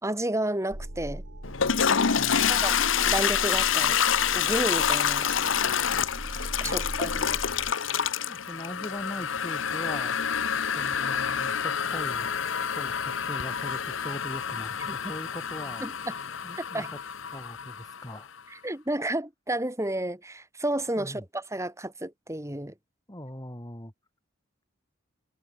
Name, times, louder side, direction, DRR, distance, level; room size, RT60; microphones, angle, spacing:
voice 1, 0.0-1.2 2.5-4.0 4.3-5.3 6.6-7.4 14.9-15.0 15.8-15.9 16.6-16.9 18.5-22.7, right 1 dB, 15° right, 6.4 m, -31 dB
sound 1, 0.7-7.7, right 1 dB, 70° right, 3.0 m, -40 dB
Toilet flush, 1.4-18.2, left 7 dB, 75° left, 1.0 m, -27 dB
voice 2, 2.2-2.6 6.6-6.8 8.2-10.2 10.7-12.3 12.7-15.9 16.4-17.0 17.3-18.3 21.0-21.2 23.1-23.9, left 1 dB, 20° left, 5.2 m, -41 dB
head